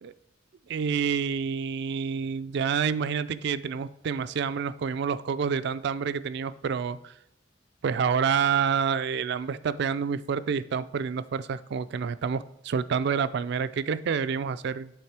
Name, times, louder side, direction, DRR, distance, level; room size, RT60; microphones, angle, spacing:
voice 1, 0.7-7.1 7.8-15.0, right 6 dB, 65° right, 15 dB, 0.3 m, -28 dB
8.4 x 3.6 x 4.7 m, 0.84 s
head